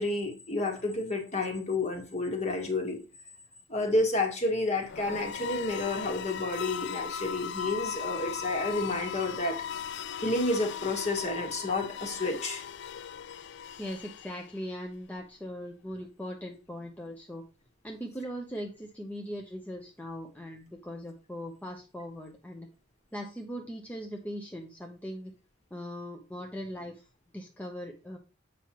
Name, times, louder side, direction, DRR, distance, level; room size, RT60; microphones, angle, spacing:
voice 1, 0.0-3.0 3.7-9.6 10.2-12.6, left 2 dB, 35° left, 3 dB, 1.5 m, -30 dB
sound 1, 4.8-14.8, left 8 dB, 60° left, 0.4 m, -38 dB
voice 2, 13.8-17.4 17.8-22.7 23.1-25.3 25.7-27.0 27.3-28.2, equal, 10° left, 0 dB, 0.8 m, -40 dB
7.6 x 5.8 x 3.0 m, 0.32 s
head